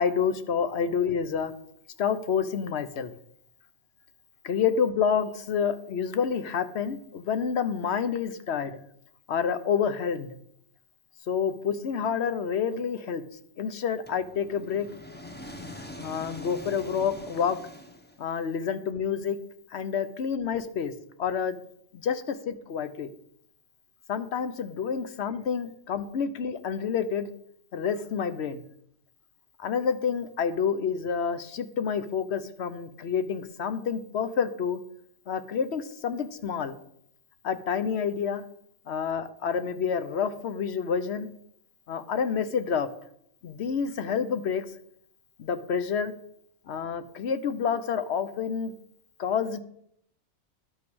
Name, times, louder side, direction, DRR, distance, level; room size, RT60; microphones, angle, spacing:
voice 1, 0.0-1.5 2.0-3.1 4.4-8.8 9.3-10.4 11.3-13.2 13.6-14.9 16.0-17.6 18.2-19.4 19.7-20.9 21.2-21.6 21.9-23.1 24.1-27.3 27.7-28.6 29.6-34.8 35.3-36.8 37.4-38.4 38.9-41.3 41.9-42.9 43.4-44.7 45.4-46.1 46.7-48.7 49.2-49.6, left 6 dB, 70° left, 11 dB, 1.1 m, -28 dB
sound 1, 14.1-18.5, left 1 dB, 10° left, 1.0 m, -43 dB
11.5 x 6.0 x 6.2 m, 0.71 s
omnidirectional pair, 1.2 m